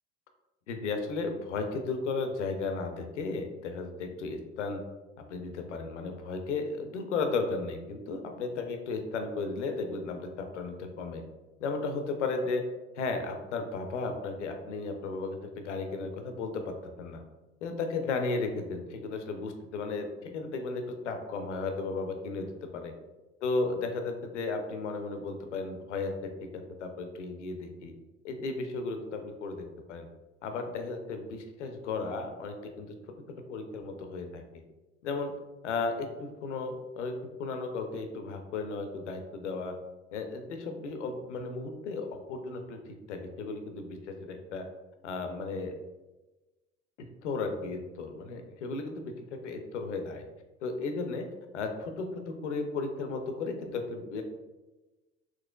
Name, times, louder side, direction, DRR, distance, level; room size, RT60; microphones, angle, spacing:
voice 1, 0.7-4.8 5.3-11.2 11.6-12.6 13.0-17.2 17.6-22.9 23.4-26.1 26.5-27.9 28.2-30.1 30.4-32.9 33.5-34.4 35.0-35.3 35.6-37.1 37.4-39.7 40.1-42.8 43.1-44.7 45.0-45.7 47.2-50.2 50.6-51.3 51.5-54.2, left 3 dB, 80° left, 5 dB, 0.5 m, -34 dB
3.8 x 2.9 x 2.2 m, 1.1 s
figure-of-eight pair, 60°, 36 cm